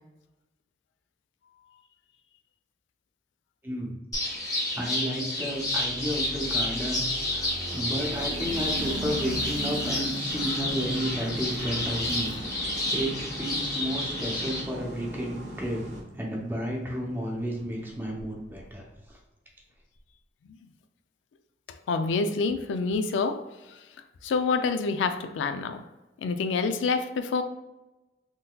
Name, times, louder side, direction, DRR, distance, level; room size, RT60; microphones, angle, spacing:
voice 1, 3.6-4.0 4.7-13.1 13.4-15.8 16.1-19.2, equal, 10° right, -2 dB, 0.6 m, -32 dB
sound 1, 4.1-14.6, left 1 dB, 20° left, 0.8 m, -30 dB
sound 2, 5.6-18.7, right 2 dB, 90° right, 0.5 m, -41 dB
sound 3, 10.3-16.0, equal, 75° right, 1.3 m, -41 dB
voice 2, 21.9-23.4 23.7-23.8 24.2-25.8 26.2-27.4, left 4 dB, 90° left, 8 dB, 0.3 m, -27 dB
3.7 x 2.7 x 2.2 m, 1.0 s
head